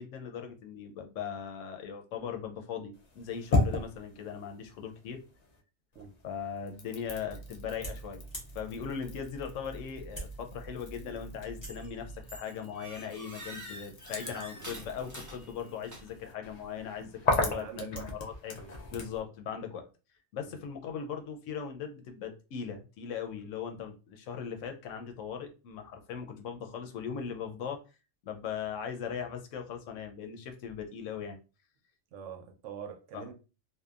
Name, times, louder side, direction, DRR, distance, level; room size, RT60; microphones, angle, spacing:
voice 1, 0.0-5.2 6.2-8.2 8.5-17.1 17.4-18.6 18.9-19.9 20.3-27.8 28.2-31.4 33.1-33.3, left 7 dB, 90° left, 0.9 m, -39 dB
sound 1, 2.9-5.6 5.9-19.2, left 2 dB, 55° left, 0.5 m, -37 dB
sound 2, 7.0-12.4, right 2 dB, 20° left, 0.9 m, -45 dB
sound 3, 11.6-12.0 12.3-16.3, equal, 25° right, 0.4 m, -46 dB
voice 2, 17.4-18.1 18.6-18.8 20.4-20.6 32.1-33.3, right 8 dB, 85° right, 0.9 m, -44 dB
2.8 x 2.2 x 2.3 m
omnidirectional pair, 1.3 m